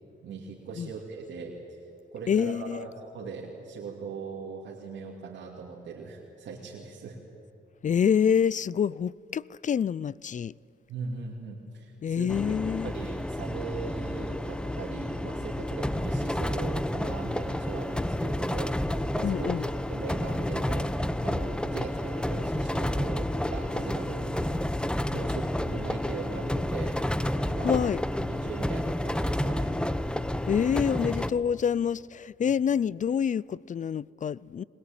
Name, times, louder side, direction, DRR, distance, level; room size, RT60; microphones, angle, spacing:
voice 1, 0.2-1.6 2.1-7.2 10.9-12.3 12.8-21.0 21.2-24.4 25.1-27.0 27.5-27.8 28.3-29.8 32.4-32.5, right 5 dB, 80° right, 2.8 m, -40 dB
voice 2, 2.3-2.9 7.8-10.5 12.0-12.9 19.2-19.7 27.6-28.0 30.5-34.6, left 7 dB, 45° left, 0.4 m, -27 dB
sound 1, 12.3-31.3, left 1 dB, 5° left, 0.9 m, -30 dB
21.5 x 20.5 x 8.9 m
cardioid pair, 70°, 18 cm